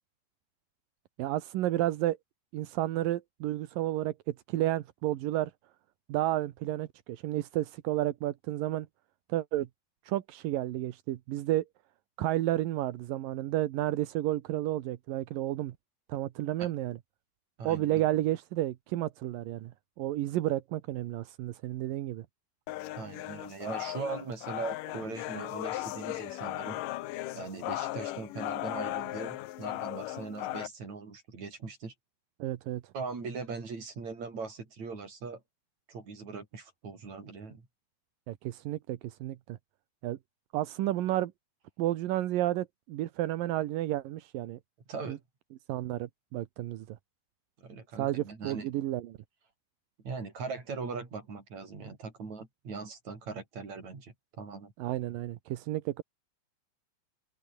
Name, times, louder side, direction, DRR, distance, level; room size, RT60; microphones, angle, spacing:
voice 1, 1.2-2.2 2.5-5.5 6.1-8.9 9.3-9.7 10.0-11.6 12.2-15.8 16.1-17.0 17.6-19.7 20.0-22.3 32.4-32.8 38.3-39.6 40.0-40.2 40.5-41.3 41.8-44.6 45.1-45.2 45.7-47.0 47.9-49.2 54.8-56.0, right 14 dB, 65° right, 2.5 m, -31 dB
voice 2, 17.6-18.0 23.0-26.8 27.3-31.9 32.9-35.4 35.9-37.7 44.9-45.2 47.6-48.7 50.0-54.7, right 4 dB, 40° right, 6.5 m, -40 dB
sound 1, 22.7-30.7, left 16 dB, 80° left, 2.0 m, -37 dB
open air
omnidirectional pair, 4.9 m